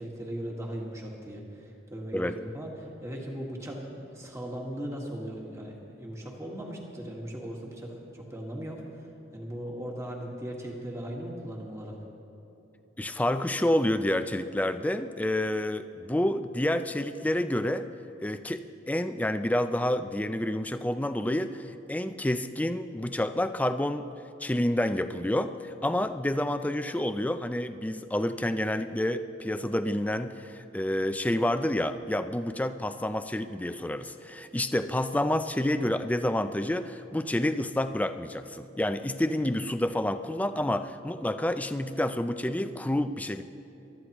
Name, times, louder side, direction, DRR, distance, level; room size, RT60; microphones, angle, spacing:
voice 1, 0.0-12.0, right 1 dB, 15° right, -1 dB, 1.6 m, -38 dB
voice 2, 13.0-17.9 18.2-24.1 24.4-43.4, left 1 dB, 10° left, 10 dB, 0.4 m, -29 dB
23.5 x 13.0 x 3.0 m, 2.9 s
head